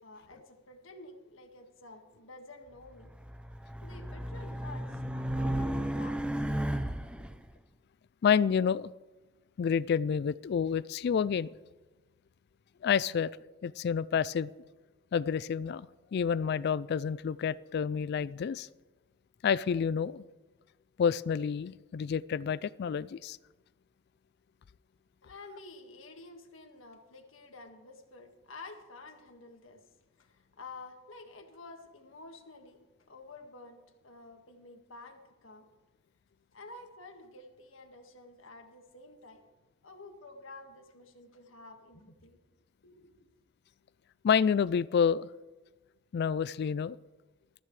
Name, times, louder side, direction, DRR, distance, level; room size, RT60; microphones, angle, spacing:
voice 1, 0.0-3.1 3.8-6.4 25.2-29.9 30.2-35.7 36.5-39.5 39.8-42.4 42.8-43.3, left 3 dB, 90° left, 4 dB, 1.8 m, -50 dB
Race car auto racing, 3.0-7.4, right 1 dB, 5° right, 0.6 m, -34 dB
voice 2, 8.2-8.9 9.6-11.5 12.8-13.3 13.6-14.5 15.1-15.9 16.1-18.7 19.4-20.2 21.0-23.4 44.2-45.3 46.1-47.0, left 7 dB, 55° left, 19 dB, 0.3 m, -29 dB
20.0 x 14.5 x 3.3 m, 1.2 s
head